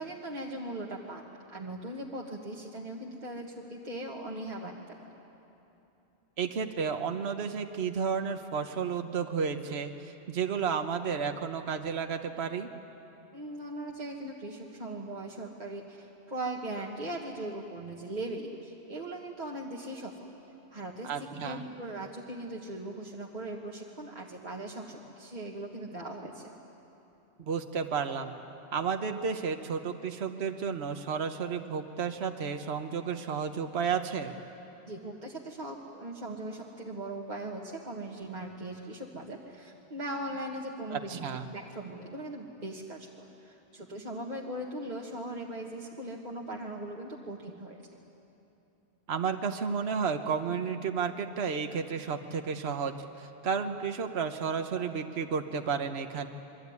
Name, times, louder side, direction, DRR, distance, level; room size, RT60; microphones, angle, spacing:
voice 1, 0.0-5.2 13.3-20.3 20.7-26.5 34.9-47.8, right 1 dB, 40° right, -2 dB, 1.8 m, -39 dB
voice 2, 6.4-12.7 21.0-21.6 27.4-28.3 28.7-34.4 40.9-41.5 49.1-56.3, right 6 dB, 70° right, 6 dB, 1.3 m, -32 dB
27.5 x 22.5 x 9.6 m, 3.0 s
omnidirectional pair, 1.1 m